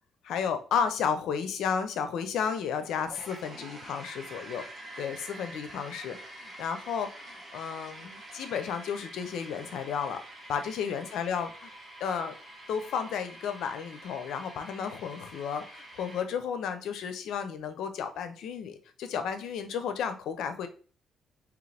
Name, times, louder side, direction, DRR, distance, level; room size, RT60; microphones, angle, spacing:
voice 1, 0.2-4.6 5.0-10.2 10.5-11.7 12.0-12.3 12.7-20.7, left 7 dB, 80° left, 9 dB, 0.6 m, -33 dB
sound 1, 2.4-16.2, right 1 dB, 20° right, 1.4 m, -47 dB
3.7 x 3.0 x 3.3 m, 0.38 s
cardioid pair, 90°, 0 cm